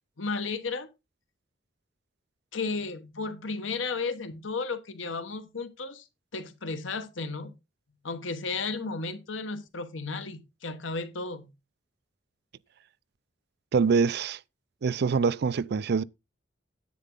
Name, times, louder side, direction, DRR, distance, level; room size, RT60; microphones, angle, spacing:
voice 1, 0.2-0.9 2.5-6.0 6.3-7.5 8.0-11.5, left 4 dB, 90° left, 1.2 m, -34 dB
voice 2, 13.7-14.4 14.8-16.0, right 5 dB, 60° right, 0.4 m, -24 dB
10.0 x 8.3 x 3.8 m
head